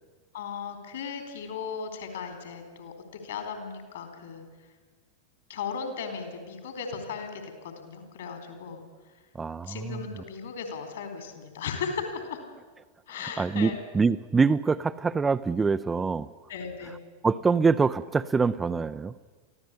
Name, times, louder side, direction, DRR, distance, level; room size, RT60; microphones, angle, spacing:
voice 1, 0.3-4.4 5.5-8.8 9.6-12.4 13.1-13.8 16.5-17.0, left 6 dB, 60° left, 6 dB, 4.1 m, -36 dB
voice 2, 9.3-10.0 13.4-16.3 17.2-19.1, right 4 dB, 15° right, 11 dB, 0.6 m, -25 dB
23.5 x 15.5 x 8.4 m, 1.4 s
figure-of-eight pair, 90°, 0 cm